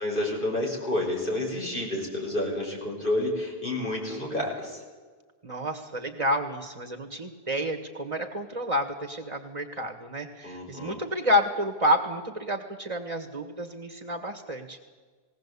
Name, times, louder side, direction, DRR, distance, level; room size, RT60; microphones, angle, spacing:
voice 1, 0.0-4.8 10.4-11.0, left 1 dB, 55° left, -2 dB, 6.0 m, -29 dB
voice 2, 5.4-14.8, equal, 35° right, 6 dB, 1.6 m, -29 dB
20.0 x 17.5 x 8.3 m, 1.4 s
omnidirectional pair, 1.0 m